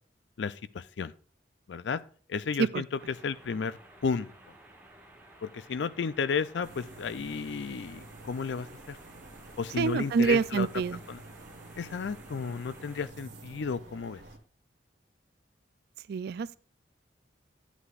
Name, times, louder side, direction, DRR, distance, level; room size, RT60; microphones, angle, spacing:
voice 1, 0.4-1.1 1.7-2.0 2.3-2.9 3.2-4.3 5.4-9.0 9.6-10.7 11.1-11.2 11.8-14.2, left 5 dB, 70° left, 0.4 m, -33 dB
sound 1, 3.0-13.1, right 1 dB, 10° right, 1.5 m, -55 dB
sound 2, 6.6-14.4, right 2 dB, 80° right, 1.5 m, -49 dB
voice 2, 9.8-11.0 16.1-16.6, right 5 dB, 55° right, 0.3 m, -26 dB
11.5 x 8.2 x 2.5 m
head